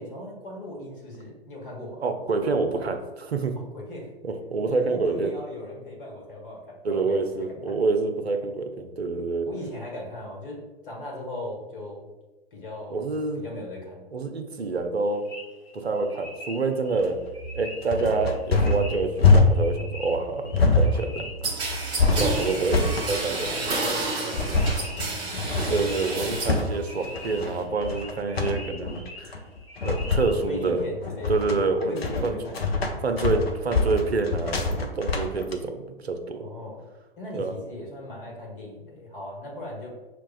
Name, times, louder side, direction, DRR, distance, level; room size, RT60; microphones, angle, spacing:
voice 1, 0.0-2.0 3.6-4.1 4.6-7.2 7.6-7.8 9.4-12.1 12.5-14.1 22.0-25.6 30.5-31.3 31.9-32.6 36.3-36.8 37.2-39.9, left 1 dB, 60° left, -1 dB, 1.4 m, -38 dB
voice 2, 2.0-3.6 4.2-5.3 6.8-9.5 12.9-13.4 14.1-15.2 15.7-17.2 17.5-21.9 22.2-22.8 23.1-23.4 23.8-23.9 25.7-29.4 29.8-30.8 31.3-31.9 32.2-32.4 33.0-36.4 37.3-37.5, right 3 dB, 85° right, 6 dB, 0.6 m, -27 dB
sound 1, 15.1-30.7, left 2 dB, 30° left, 1.1 m, -44 dB
sound 2, 16.9-35.5, left 3 dB, 75° left, 0.6 m, -25 dB
sound 3, 21.4-26.6 27.0-27.6, right 3 dB, 15° right, 0.5 m, -30 dB
6.3 x 2.3 x 2.3 m, 1.2 s
figure-of-eight pair, 110°, 31 cm